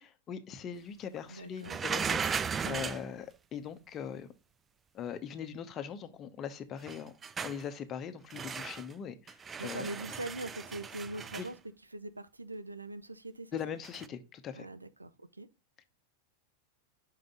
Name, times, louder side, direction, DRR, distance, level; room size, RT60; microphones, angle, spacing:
voice 1, 0.0-4.3 4.9-7.1 7.4-9.9 11.3-11.5 13.5-14.7, left 8 dB, 30° left, 0.9 m, -41 dB
voice 2, 1.3-1.8 2.6-2.9 9.6-11.5 11.9-13.8 14.5-15.5, right 2 dB, 80° right, 0.5 m, -42 dB
sound 1, 1.6-3.1 6.8-7.6 8.3-8.9 9.3-11.5 13.8-14.1, right 6 dB, 20° right, 0.3 m, -36 dB
5.7 x 5.2 x 3.7 m
figure-of-eight pair, 90°, 0 cm